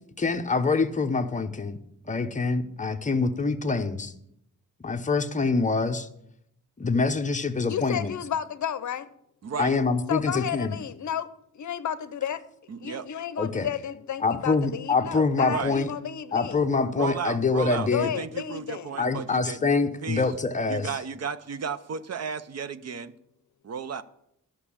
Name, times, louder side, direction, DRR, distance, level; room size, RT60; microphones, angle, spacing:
voice 1, 0.2-1.8 2.1-4.1 4.8-6.1 6.8-8.1 9.6-10.7 13.4-13.7 14.2-15.9 16.3-18.1 19.0-20.9, left 4 dB, 20° left, 0.8 m, -25 dB
voice 2, 7.7-9.1 10.1-11.3 11.5-12.4 12.8-16.7 17.9-19.0, left 9 dB, 60° left, 0.7 m, -32 dB
voice 3, 9.4-9.8 12.7-13.1 15.4-15.8 17.0-19.7 20.0-20.3 20.7-23.1 23.6-24.0, right 6 dB, 50° right, 0.7 m, -34 dB
13.5 x 6.1 x 8.5 m
wide cardioid pair, 155°, 33 cm